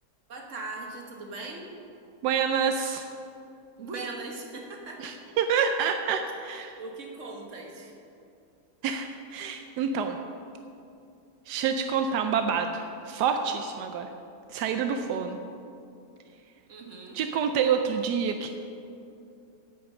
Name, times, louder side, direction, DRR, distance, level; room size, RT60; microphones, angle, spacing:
voice 1, 0.3-1.7 3.8-5.2 6.8-8.0 16.7-17.2, right 3 dB, 50° right, 1 dB, 1.6 m, -39 dB
voice 2, 2.2-3.1 5.0-6.8 8.8-10.2 11.5-14.1 14.5-15.4 17.1-18.5, right 6 dB, 85° right, 6 dB, 1.2 m, -27 dB
10.0 x 7.1 x 7.6 m, 2.6 s
omnidirectional pair, 1.7 m